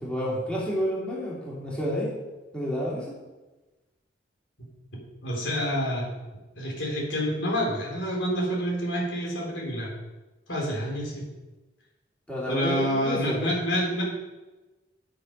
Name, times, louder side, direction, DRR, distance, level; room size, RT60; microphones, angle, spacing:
voice 1, 0.0-2.1 2.5-3.1 12.3-13.5, equal, 5° left, -6 dB, 2.7 m, -29 dB
voice 2, 5.2-6.1 6.6-9.9 10.5-11.2 12.5-14.0, equal, 85° left, -2 dB, 3.9 m, -28 dB
10.5 x 6.9 x 5.4 m, 1.1 s
head